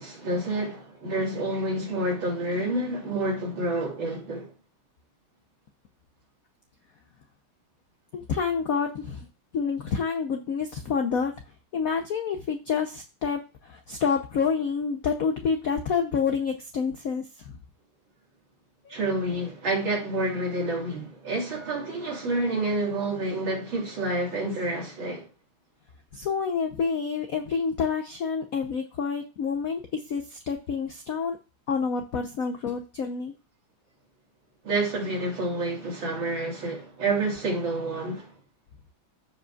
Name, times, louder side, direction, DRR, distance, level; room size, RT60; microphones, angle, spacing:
voice 1, 0.0-4.5 18.9-25.3 34.6-38.4, right 2 dB, 65° right, 3.6 m, -28 dB
voice 2, 8.1-9.3 9.5-11.3 11.7-17.6 18.8-18.9 26.1-31.4 31.7-33.3, left 6 dB, 70° left, 0.8 m, -28 dB
14.5 x 5.0 x 2.3 m
omnidirectional pair, 2.3 m